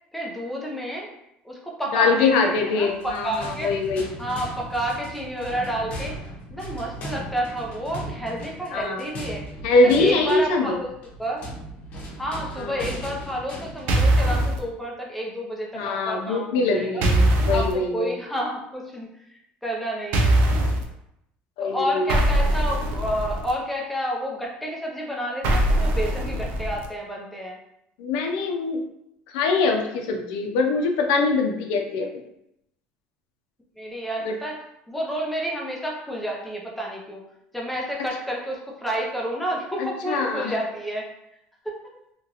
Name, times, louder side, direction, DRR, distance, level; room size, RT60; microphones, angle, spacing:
voice 1, 0.1-1.1 1.4-3.7 4.2-6.2 6.5-9.4 9.8-10.9 11.2-11.5 12.2-17.0 17.5-20.4 21.6-27.6 33.8-37.2 37.5-41.1 41.6-42.0, equal, 5° left, -2 dB, 0.6 m, -30 dB
voice 2, 1.9-4.1 8.7-9.0 9.6-10.8 12.6-12.8 15.7-18.1 21.6-22.1 28.0-28.8 29.3-32.2 34.2-34.3 39.8-40.5, left 3 dB, 80° left, 2 dB, 0.5 m, -23 dB
sound 1, 2.9-14.3, equal, 45° left, 0.8 m, -38 dB
sound 2, 13.9-14.6 17.0-17.7 20.1-20.8 22.1-23.5 25.4-26.9, right 1 dB, 65° right, 0.5 m, -21 dB
2.9 x 2.4 x 2.8 m, 0.80 s
cardioid pair, 135°, 3 cm